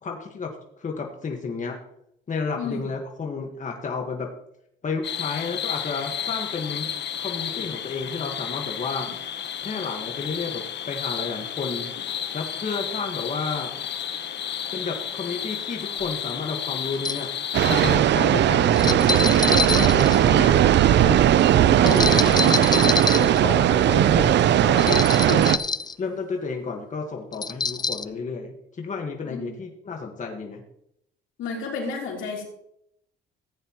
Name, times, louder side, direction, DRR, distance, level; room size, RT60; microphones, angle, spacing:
voice 1, 0.0-1.8 2.3-4.3 4.8-6.9 7.2-9.1 9.6-11.9 12.3-13.7 14.7-17.3 17.7-20.7 21.0-21.2 21.8-25.5 26.0-30.6, left 4 dB, 40° left, 2 dB, 1.5 m, -31 dB
voice 2, 2.5-2.8 14.1-14.2 29.2-29.5 31.4-32.4, left 4 dB, 85° left, -1 dB, 3.2 m, -32 dB
sound 1, 5.0-18.0, left 9 dB, 60° left, 1.0 m, -32 dB
sound 2, 16.0-16.1 16.9-17.3 18.8-20.6 21.9-23.4 24.8-25.9 27.3-28.0, left 4 dB, 20° left, 0.5 m, -26 dB
sound 3, 17.5-25.6, right 11 dB, 60° right, 0.5 m, -18 dB
15.0 x 9.3 x 3.0 m, 0.77 s
cardioid pair, 90°, 20 cm